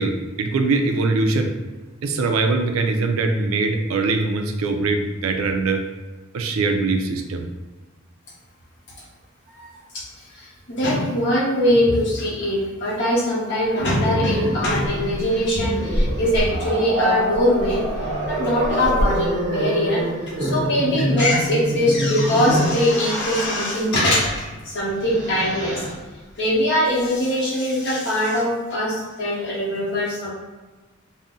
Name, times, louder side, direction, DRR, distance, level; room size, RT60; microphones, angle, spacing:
voice 1, 0.0-1.5 2.0-5.8 6.3-7.5, right 3 dB, 75° right, 5 dB, 0.4 m, -22 dB
voice 2, 10.3-17.8 18.3-20.0 20.4-25.8 26.4-30.3, left 1 dB, 55° left, -5 dB, 0.9 m, -22 dB
Growling, 13.8-22.8 24.2-24.4 24.8-25.9, equal, 35° right, 0.7 m, -25 dB
2.6 x 2.0 x 3.6 m, 1.3 s
head